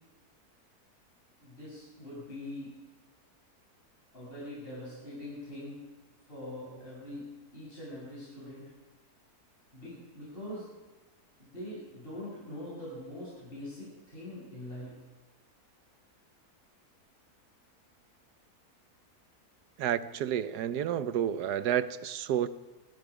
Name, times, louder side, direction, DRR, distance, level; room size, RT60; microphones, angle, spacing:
voice 1, 1.4-2.7 4.1-5.8 6.2-8.6 9.7-10.6 11.4-15.0, left 1 dB, 35° left, -7 dB, 7.8 m, -43 dB
voice 2, 19.8-22.5, right 10 dB, 90° right, 13 dB, 1.4 m, -30 dB
27.0 x 20.0 x 5.0 m, 1.2 s
omnidirectional pair, 1.7 m